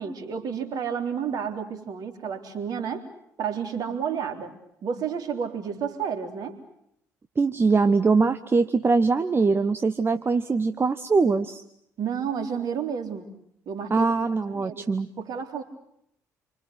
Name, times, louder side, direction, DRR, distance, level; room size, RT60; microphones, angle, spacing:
voice 1, 0.0-3.0 3.4-4.5 4.8-6.6 12.0-13.3 13.7-14.1 14.5-14.9 15.2-15.6, right 7 dB, 50° right, 6 dB, 3.7 m, -31 dB
voice 2, 7.4-11.6 13.9-15.1, right 4 dB, 25° right, 9 dB, 1.1 m, -22 dB
28.0 x 25.0 x 8.1 m, 0.73 s
figure-of-eight pair, 45°, 8 cm